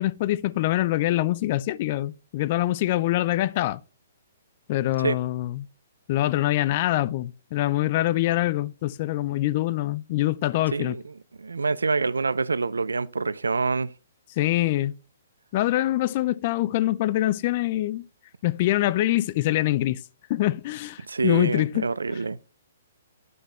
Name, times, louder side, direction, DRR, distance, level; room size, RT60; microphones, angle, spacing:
voice 1, 0.0-3.8 4.7-5.7 6.1-11.0 14.4-14.9 15.5-18.1 18.4-20.0 20.3-22.2, left 15 dB, 45° left, 0.3 m, -24 dB
voice 2, 10.7-11.1 11.4-13.9 21.1-22.4, right 4 dB, 85° right, 0.4 m, -26 dB
9.5 x 5.3 x 3.2 m
figure-of-eight pair, 130°, 0 cm